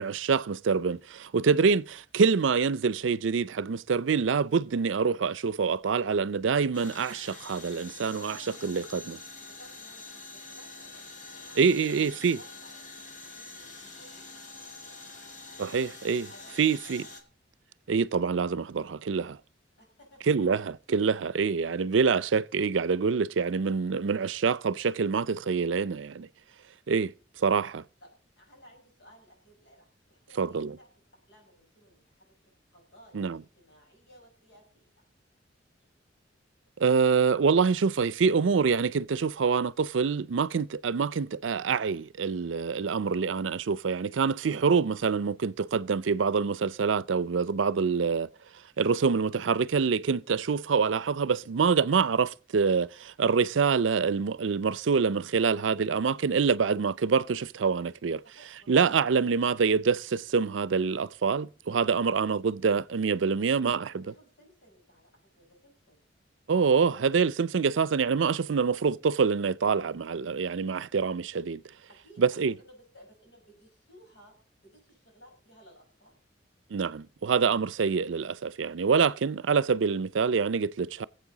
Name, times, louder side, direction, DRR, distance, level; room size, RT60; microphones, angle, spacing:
voice 1, 0.0-8.4 8.6-9.2 11.6-12.4 15.6-16.3 16.6-17.0 17.9-19.4 20.3-26.3 26.9-27.8 30.4-30.8 33.1-33.4 36.8-48.3 48.8-58.2 58.7-64.0 66.5-71.6 72.2-72.5 76.7-81.1, right 5 dB, 90° right, 0.5 m, -26 dB
sound 1, 6.7-17.2, left 3 dB, 45° left, 2.1 m, -46 dB
voice 2, 8.1-9.1 9.6-11.0 11.3-15.0 16.3-16.5 16.8-17.1 19.8-20.2 28.0-28.1 28.4-30.9 31.3-32.3 32.7-34.9 56.1-56.3 58.2-58.9 63.2-66.0 72.0-72.2 72.6-76.2, equal, 65° left, 5.6 m, -57 dB
20.5 x 7.9 x 3.9 m
head